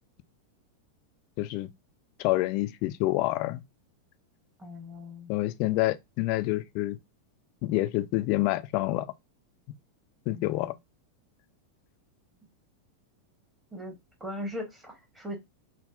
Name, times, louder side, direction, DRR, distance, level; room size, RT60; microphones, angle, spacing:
voice 1, 1.4-1.7 2.2-3.6 5.3-7.0 7.6-9.1 10.3-10.7, left 18 dB, 45° left, 0.3 m, -27 dB
voice 2, 4.6-5.3 10.3-10.6 13.7-13.9 14.2-15.4, left 1 dB, 10° right, 1.1 m, -39 dB
3.6 x 2.1 x 2.5 m
figure-of-eight pair, 90°, 0 cm